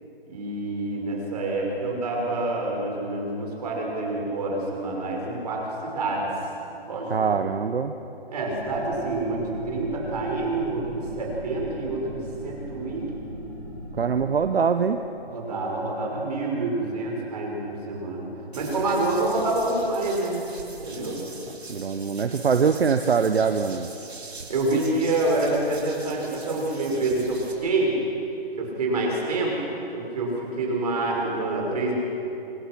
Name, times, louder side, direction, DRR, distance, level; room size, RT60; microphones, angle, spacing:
voice 1, 0.3-6.3 6.9-7.3 8.3-13.1 15.3-18.3 18.5-20.4 20.8-21.2 24.5-27.9 28.6-29.5 29.9-31.9, right 2 dB, 40° right, -1 dB, 6.0 m, -27 dB
voice 2, 7.1-7.9 13.9-15.0 21.5-23.9, right 6 dB, 70° right, 8 dB, 1.1 m, -23 dB
sound 1, 8.5-14.4, right 1 dB, 15° left, 6.7 m, -38 dB
sound 2, 18.5-27.5, right 3 dB, 85° right, 5.1 m, -42 dB
26.5 x 20.5 x 6.1 m, 2.9 s
hypercardioid pair, 165°, 31 cm